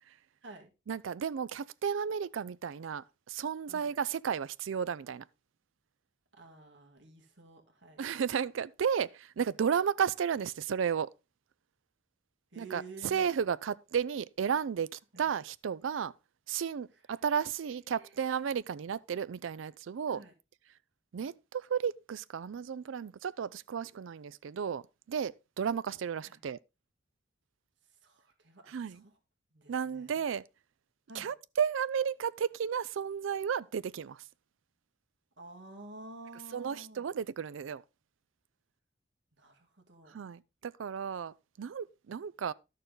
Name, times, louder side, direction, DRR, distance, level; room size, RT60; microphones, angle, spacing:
voice 1, 0.9-5.2 8.0-11.1 12.6-16.1 16.5-20.2 21.1-24.8 25.1-26.6 28.7-29.0 29.7-30.4 31.1-34.2 36.5-37.8 40.1-42.5, right 7 dB, 85° right, 0.4 m, -33 dB
voice 2, 6.3-8.0 12.5-13.3 15.1-15.3 16.9-17.1 18.0-18.3 20.1-20.3 26.2-26.4 28.0-29.1 29.5-30.2 31.1-31.3 35.4-37.1 39.4-40.2, right 2 dB, 65° right, 2.0 m, -51 dB
12.0 x 6.7 x 3.8 m
head